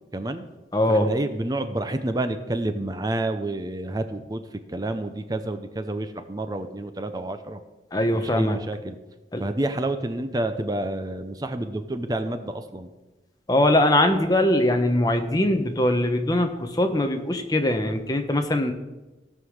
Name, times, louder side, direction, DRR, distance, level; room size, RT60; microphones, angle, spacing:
voice 1, 0.1-0.5 0.9-4.4 4.7-7.6 8.1-8.9 9.4-12.9, right 1 dB, 20° right, 9 dB, 0.7 m, -29 dB
voice 2, 0.7-1.1 7.9-8.6 9.3-9.4 13.5-18.7, left 1 dB, 20° left, 5 dB, 1.0 m, -21 dB
16.0 x 5.6 x 6.4 m, 1.1 s
head